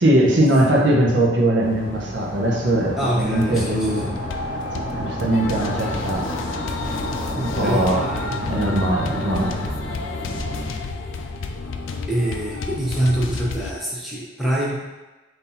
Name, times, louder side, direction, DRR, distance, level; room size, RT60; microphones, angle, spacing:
voice 1, 0.0-4.1 4.7-6.3 7.3-8.1 8.4-9.6, right 1 dB, 65° right, -1 dB, 0.7 m, -20 dB
sound 1, 1.6-10.7, equal, 45° left, 1.3 m, -32 dB
voice 2, 3.0-4.1 7.6-8.3 12.1-14.7, right 1 dB, ahead, -5 dB, 0.7 m, -25 dB
sound 2, 3.3-13.7, left 4 dB, 75° left, 0.4 m, -31 dB
sound 3, 5.4-5.8 6.1-6.5 6.8-7.2 7.5-7.9 8.2-8.6 8.9-9.3 9.6-10.0 10.3-10.7, equal, 15° left, 1.2 m, -36 dB
3.8 x 2.7 x 4.1 m, 1.1 s
head